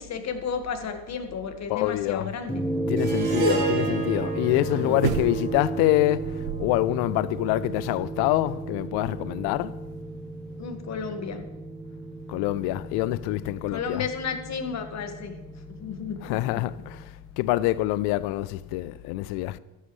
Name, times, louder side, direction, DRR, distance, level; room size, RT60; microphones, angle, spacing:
voice 1, 0.0-2.6 4.7-5.0 10.6-11.4 13.7-15.4 15.8-16.6, left 6 dB, 35° left, 1.8 m, -33 dB
voice 2, 1.7-2.3 2.9-9.8 12.3-14.1 16.2-19.6, left 16 dB, 60° left, 0.6 m, -26 dB
sound 1, 2.5-17.0, right 3 dB, ahead, 1.1 m, -33 dB
Harp, 3.0-7.4, right 4 dB, 55° right, 4.6 m, -33 dB
sound 2, 5.0-5.7 6.2-7.0 7.3-7.4, right 12 dB, 75° right, 0.8 m, -31 dB
13.5 x 11.5 x 3.2 m
hypercardioid pair, 85°, 44 cm